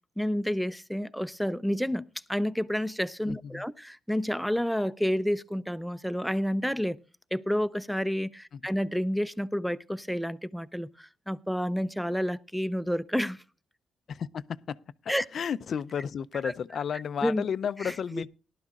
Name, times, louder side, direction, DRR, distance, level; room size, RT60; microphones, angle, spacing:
voice 1, 0.2-7.0 7.3-13.4 15.1-15.2 17.2-17.4, equal, ahead, 0.6 m, -29 dB
voice 2, 3.2-3.6 8.5-8.6 14.1-18.3, left 7 dB, 55° left, 0.5 m, -33 dB
18.0 x 12.0 x 2.4 m
cardioid pair, 90°, 0 cm